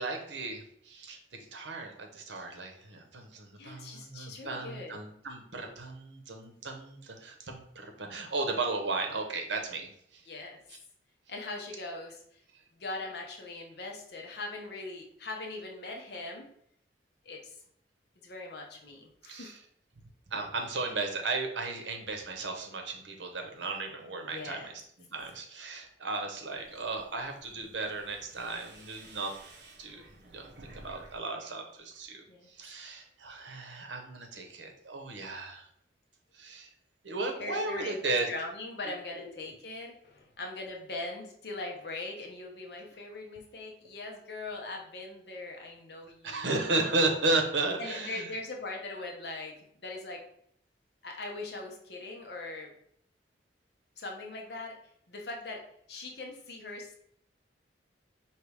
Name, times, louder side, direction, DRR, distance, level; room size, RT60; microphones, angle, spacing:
voice 1, 0.0-10.2 19.3-19.6 20.3-24.8 25.1-29.4 29.8-35.7 36.3-36.7 37.0-38.3 39.1-39.3 46.2-48.3, right 3 dB, 85° right, 4 dB, 0.8 m, -35 dB
voice 2, 3.6-5.0 10.3-10.6 11.3-12.4 12.7-16.5 17.2-17.6 18.2-19.6 24.2-24.7 32.3-32.5 37.4-38.0 38.3-46.5 47.8-50.2 51.0-52.7 54.0-54.8 55.1-56.9, left 2 dB, 65° left, 1 dB, 0.8 m, -41 dB
sound 1, 26.5-31.2 31.5-32.1, right 2 dB, 65° right, 0.9 m, -54 dB
4.7 x 2.9 x 3.3 m, 0.68 s
head